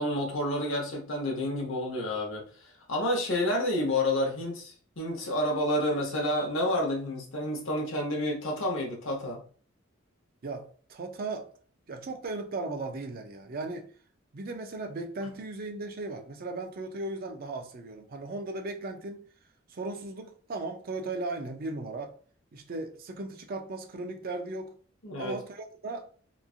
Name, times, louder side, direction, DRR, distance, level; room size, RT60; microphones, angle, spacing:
voice 1, 0.0-2.5 2.9-9.4 25.0-25.4, left 1 dB, 65° left, 0.9 m, -29 dB
voice 2, 10.4-11.5 11.9-13.9 14.3-19.3 19.7-22.1 22.5-24.7 25.2-26.1, right 2 dB, 45° right, 0.4 m, -37 dB
3.0 x 2.4 x 2.4 m
head